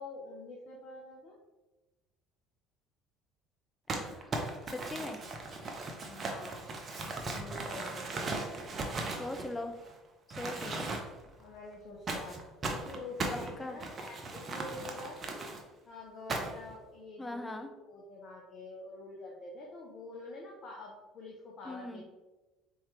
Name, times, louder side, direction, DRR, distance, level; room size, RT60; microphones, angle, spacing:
voice 1, 0.0-1.4 6.0-6.7 7.2-8.1 10.5-10.9 11.4-12.4 12.7-15.4 15.9-22.0, left 2 dB, 50° left, -2 dB, 0.9 m, -47 dB
voice 2, 3.9-4.4 4.7-5.2 9.2-9.7 10.4-10.9 13.3-13.8 17.2-17.7 21.7-22.0, left 2 dB, 15° left, 6 dB, 0.6 m, -40 dB
Crumpling crinkling, 3.9-9.9 10.3-11.3 12.1-15.6 16.3-16.7, right 2 dB, 40° right, 0.8 m, -38 dB
4.2 x 3.6 x 3.3 m, 1.1 s
hypercardioid pair, 60°, 0 cm